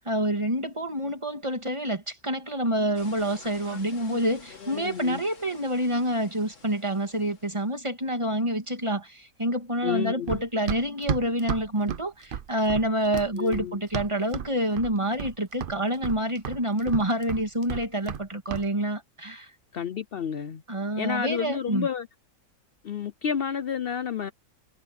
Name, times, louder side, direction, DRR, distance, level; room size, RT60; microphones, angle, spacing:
voice 1, 0.1-19.5 20.7-21.9, right 1 dB, 15° right, 2.1 m, -27 dB
sound 1, 2.9-7.7, left 4 dB, 45° left, 2.7 m, -51 dB
voice 2, 3.7-4.2 4.6-5.2 9.8-10.4 13.3-13.8 19.7-20.6 21.0-22.1 22.8-24.3, left 8 dB, 85° left, 0.5 m, -31 dB
Run, 10.3-14.5 14.8-15.4 15.6-18.2 18.5-18.7, right 7 dB, 70° right, 0.5 m, -33 dB
omnidirectional pair, 1.9 m